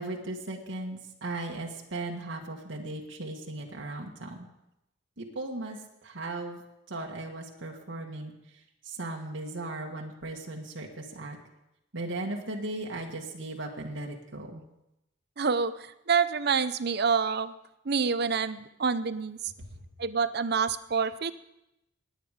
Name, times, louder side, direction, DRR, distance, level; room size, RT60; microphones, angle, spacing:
voice 1, 0.0-4.5 5.2-6.6 6.9-8.3 8.8-11.4 11.9-14.6 19.6-19.9, right 2 dB, 85° right, 0 dB, 1.8 m, -37 dB
voice 2, 15.4-17.5 17.9-19.4 20.0-21.3, right 5 dB, 55° right, 14 dB, 0.7 m, -27 dB
20.0 x 9.1 x 5.0 m, 0.88 s
head